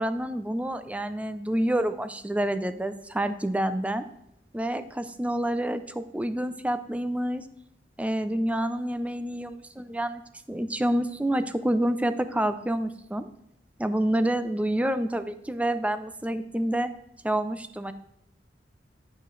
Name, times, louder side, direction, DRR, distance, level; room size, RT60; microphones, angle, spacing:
voice 1, 0.0-4.0 4.5-7.4 8.0-10.2 10.5-13.3 13.8-16.9 17.2-17.9, right 1 dB, 10° right, 11 dB, 0.4 m, -28 dB
11.5 x 5.7 x 3.2 m, 0.81 s
head